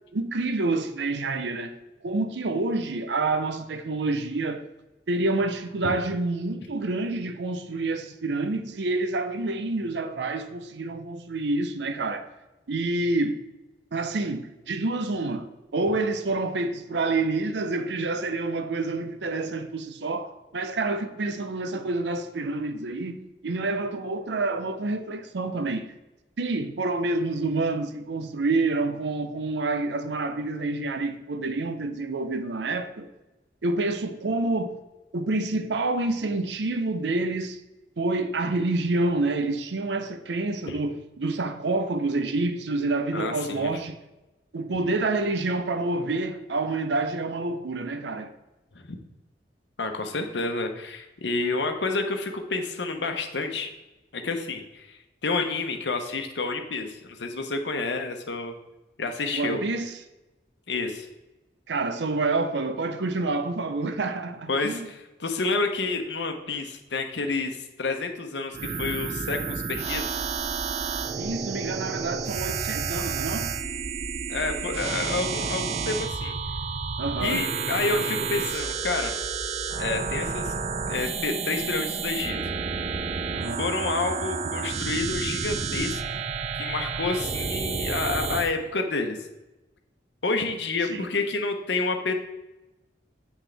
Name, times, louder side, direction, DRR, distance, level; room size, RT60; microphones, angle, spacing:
voice 1, 0.1-1.7 2.0-4.7 5.1-12.3 12.7-13.4 13.9-25.9 26.4-33.1 33.6-34.8 35.1-37.6 38.0-44.0 44.5-48.3 59.3-59.9 61.7-64.9 71.2-73.5 77.0-77.5 83.3-83.7 90.9-91.1, right 2 dB, 80° right, 0.6 m, -28 dB
voice 2, 43.1-43.7 48.7-49.0 49.8-53.7 54.1-58.5 59.0-59.6 60.7-61.1 64.5-70.2 74.3-76.3 77.2-79.1 79.8-80.5 80.9-82.4 83.6-86.2 86.5-89.2 90.2-92.1, left 3 dB, 85° left, 0.9 m, -29 dB
sound 1, 68.5-88.5, right 5 dB, 35° right, 0.4 m, -30 dB
8.0 x 6.1 x 3.4 m
head